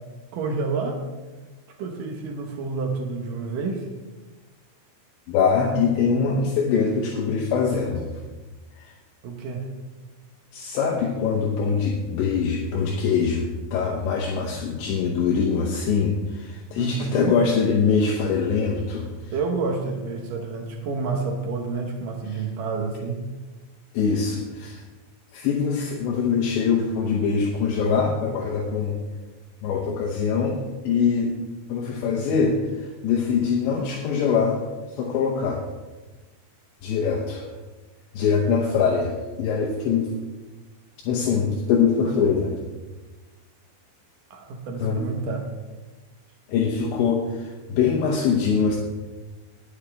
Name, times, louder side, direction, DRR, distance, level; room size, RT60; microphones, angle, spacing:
voice 1, 0.3-1.0 1.7-3.9 9.2-9.7 16.8-17.4 19.3-23.2 44.3-45.5, right 4 dB, 75° right, 3 dB, 1.9 m, -29 dB
voice 2, 5.3-8.1 8.8-8.9 10.5-19.3 22.3-22.4 23.9-24.8 25.3-29.0 29.6-31.3 31.7-34.6 34.9-35.6 36.8-37.5 38.1-39.1 39.4-40.1 41.0-42.6 44.8-45.0 46.5-48.8, left 5 dB, 75° left, 0 dB, 3.1 m, -23 dB
20.0 x 8.4 x 3.4 m, 1.2 s
omnidirectional pair, 5.5 m